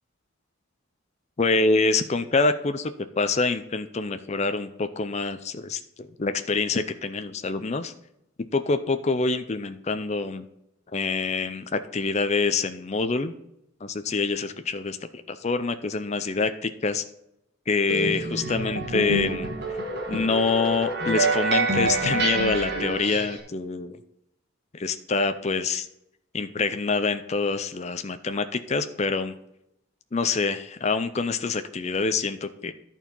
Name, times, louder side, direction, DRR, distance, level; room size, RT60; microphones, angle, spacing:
voice 1, 1.4-7.9 8.5-10.5 10.9-13.3 13.8-15.0 15.3-17.0 17.7-19.5 20.1-24.0 24.7-25.9 26.3-29.3 30.1-32.7, left 4 dB, 30° left, 9 dB, 0.5 m, -26 dB
sound 1, 17.9-23.4, right 2 dB, 50° right, 1.8 m, -27 dB
11.5 x 4.5 x 5.4 m, 0.81 s
head